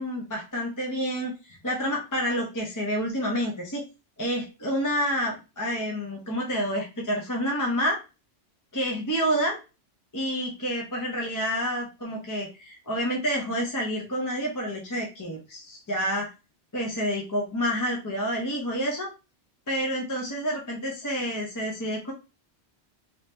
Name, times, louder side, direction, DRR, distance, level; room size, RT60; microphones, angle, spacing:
voice 1, 0.0-3.8 4.2-8.0 8.7-9.6 10.1-16.3 16.7-19.1 19.7-22.1, equal, 20° left, -2 dB, 0.7 m, -28 dB
3.0 x 2.8 x 3.3 m, 0.30 s
omnidirectional pair, 1.2 m